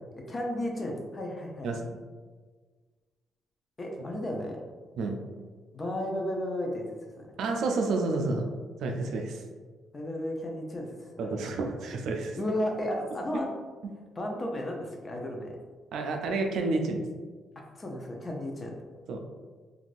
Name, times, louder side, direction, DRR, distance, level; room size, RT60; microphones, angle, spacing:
voice 1, 0.1-1.7 3.8-4.6 5.7-6.8 7.2-7.3 9.9-11.3 12.4-13.5 14.2-15.5 17.7-18.8, left 1 dB, 30° left, 1 dB, 0.6 m, -33 dB
voice 2, 1.6-2.0 5.0-5.2 7.4-8.5 8.8-9.4 11.2-12.4 15.9-17.1 19.1-19.2, right 3 dB, 75° right, 3 dB, 0.4 m, -30 dB
3.3 x 2.4 x 2.5 m, 1.4 s
cardioid pair, 90°, 0 cm